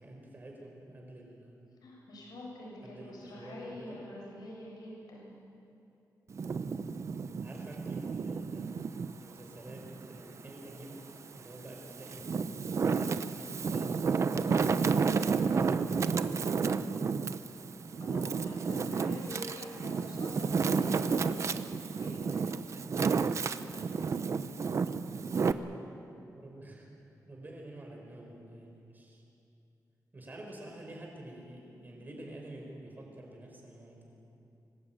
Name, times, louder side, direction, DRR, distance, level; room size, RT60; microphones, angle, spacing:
voice 1, 0.0-1.7 2.8-4.0 6.6-6.8 7.4-8.9 9.2-11.1 11.3-14.3 15.0-16.1 25.4-29.2 30.1-34.3, right 1 dB, 25° right, 0 dB, 5.1 m, -49 dB
voice 2, 1.8-5.3 14.7-15.3 18.0-21.5 21.9-22.2, left 1 dB, 80° left, -3 dB, 7.5 m, -46 dB
Wind, 6.3-9.1 9.7-10.9 11.6-25.5, right 5 dB, 45° right, 0.8 m, -31 dB
24.5 x 19.5 x 9.2 m, 2.8 s
wide cardioid pair, 175°, 7 cm